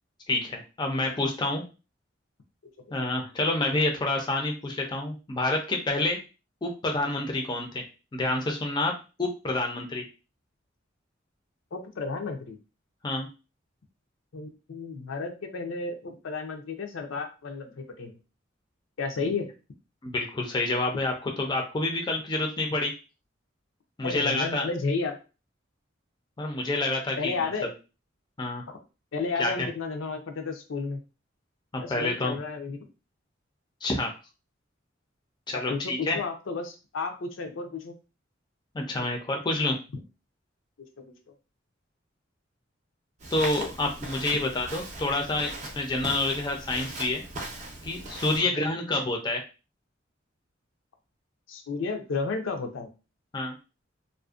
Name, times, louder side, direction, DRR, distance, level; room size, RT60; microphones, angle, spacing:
voice 1, 0.3-1.6 2.9-6.2 6.6-7.8 8.1-8.9 9.2-10.0 13.0-13.3 20.0-22.9 24.0-24.6 26.4-27.5 28.4-28.6 29.4-29.7 31.7-32.4 33.8-34.1 35.5-36.2 38.7-39.8 43.3-47.2 47.8-49.4 53.3-53.5, left 2 dB, 25° left, 2 dB, 0.4 m, -28 dB
voice 2, 11.7-12.6 14.3-18.2 19.0-19.5 24.0-25.2 27.2-27.7 29.1-31.0 31.8-32.8 35.5-37.9 48.3-48.5 51.5-52.9, left 4 dB, 80° left, 5 dB, 0.5 m, -32 dB
Walk footsteps, 43.2-48.4, right 2 dB, 40° right, 0.5 m, -39 dB
2.5 x 2.1 x 2.4 m, 0.31 s
head